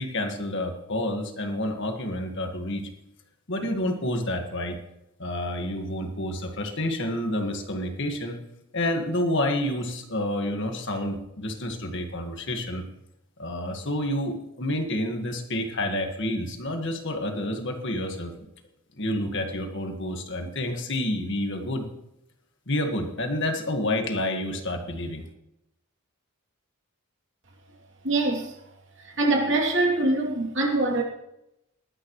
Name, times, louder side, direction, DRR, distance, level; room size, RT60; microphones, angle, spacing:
voice 1, 0.0-2.9 3.5-4.8 5.2-8.4 8.7-12.8 13.4-18.3 19.0-21.9 22.7-25.2, left 1 dB, 55° left, 1.8 m, -29 dB
voice 2, 28.0-28.5 29.0-31.0, right 2 dB, 55° right, 3.0 m, -23 dB
20.0 x 12.0 x 3.2 m
head